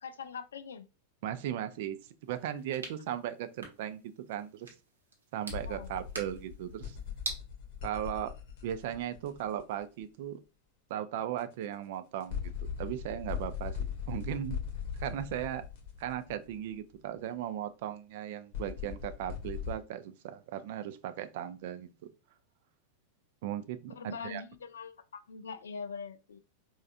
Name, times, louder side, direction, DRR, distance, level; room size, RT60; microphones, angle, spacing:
voice 1, 0.0-0.9 5.7-5.9 23.9-26.4, left 5 dB, 65° left, 0.3 m, -43 dB
voice 2, 1.2-4.7 5.3-7.0 7.8-8.3 8.6-10.4 10.9-12.5 12.8-14.6 15.0-15.6 16.0-21.9 23.4-24.4, right 11 dB, 50° right, 0.4 m, -37 dB
sound 1, 2.2-7.4, right 3 dB, 75° right, 0.8 m, -46 dB
sound 2, 5.5-9.6 11.4-11.5 12.2-16.7 18.5-19.8, left 8 dB, 50° left, 0.9 m, -39 dB
4.2 x 2.4 x 2.4 m
figure-of-eight pair, 90°, 0 cm